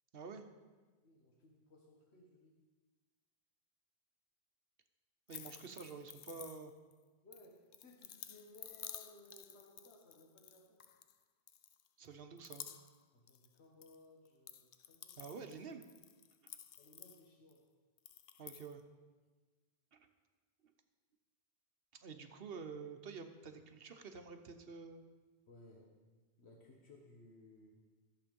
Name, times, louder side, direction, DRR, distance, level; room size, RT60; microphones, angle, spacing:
voice 1, 0.1-0.5 5.3-6.7 12.0-12.7 15.2-15.8 16.4-16.5 18.4-18.8 19.9-20.1 22.0-25.0, right 5 dB, 65° right, 7 dB, 1.1 m, -49 dB
voice 2, 1.0-2.5 5.4-5.5 7.2-10.8 13.1-15.2 16.8-17.7 25.5-25.9 26.4-27.7, left 2 dB, 90° left, 0 dB, 1.6 m, -61 dB
sound 1, 5.3-6.9 7.3-11.1 11.5-12.1 12.4-13.9 14.2-17.6 18.0-18.7, left 9 dB, 60° left, 0.7 m, -53 dB
14.0 x 7.7 x 5.3 m, 1.4 s
omnidirectional pair, 1.1 m